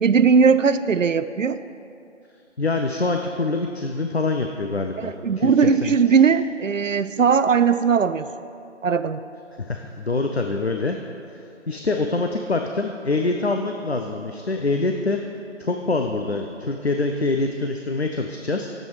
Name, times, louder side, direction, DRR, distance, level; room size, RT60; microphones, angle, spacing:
voice 1, 0.0-1.6 5.0-8.3 8.8-9.2, right 6 dB, 90° right, 12 dB, 0.5 m, -19 dB
voice 2, 2.6-5.9 9.6-11.0 11.3-11.4 11.7-15.2 15.6-18.7, left 3 dB, 55° left, 4 dB, 0.6 m, -25 dB
9.2 x 7.7 x 4.8 m, 2.6 s
figure-of-eight pair, 170°, 37 cm